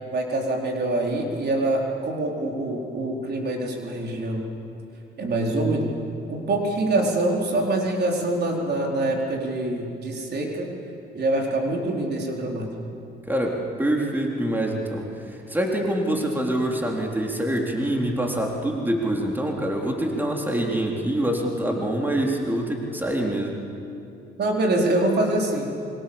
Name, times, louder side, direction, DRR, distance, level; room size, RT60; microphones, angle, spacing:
voice 1, 0.1-4.5 5.2-6.0 6.3-10.7 11.1-12.7 24.4-25.7, right 2 dB, 55° right, 0 dB, 4.3 m, -25 dB
voice 2, 13.3-23.6, right 1 dB, 10° right, 0 dB, 3.7 m, -25 dB
26.0 x 24.0 x 7.2 m, 2.6 s
cardioid pair, 90°, 20 cm